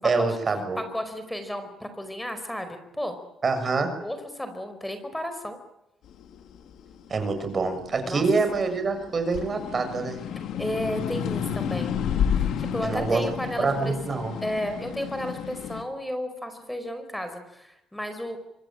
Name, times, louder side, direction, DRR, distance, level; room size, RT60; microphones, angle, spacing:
voice 1, 0.0-0.8 3.4-3.9 7.1-10.2 12.8-13.2 13.6-14.3, right 4 dB, 40° right, 8 dB, 7.0 m, -25 dB
voice 2, 0.8-3.2 4.0-5.6 8.0-8.2 10.5-11.9 12.6-13.9 14.4-18.4, equal, 5° left, 9 dB, 4.8 m, -33 dB
sound 1, 6.2-8.8 9.2-15.8, left 8 dB, 80° left, 3.1 m, -30 dB
26.5 x 22.0 x 9.0 m, 0.89 s
cardioid pair, 90°, 0 cm